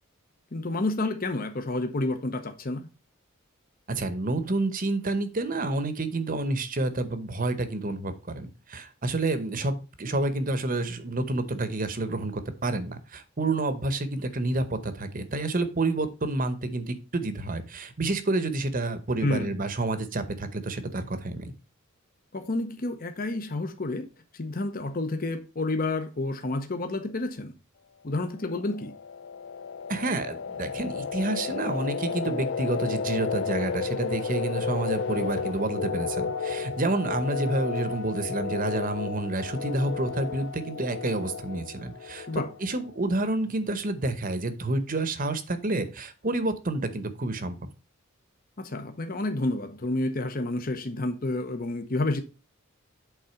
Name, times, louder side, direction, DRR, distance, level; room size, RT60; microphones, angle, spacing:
voice 1, 0.5-2.9 19.2-19.5 22.3-24.1 24.3-27.5 28.0-28.9 42.3-42.5 48.6-52.2, left 2 dB, 45° left, 0.8 m, -29 dB
voice 2, 3.9-21.5 29.9-42.3 42.6-47.6, right 2 dB, 40° right, 0.9 m, -29 dB
sound 1, 28.5-43.1, left 5 dB, 60° left, 0.4 m, -33 dB
8.2 x 3.8 x 5.8 m
head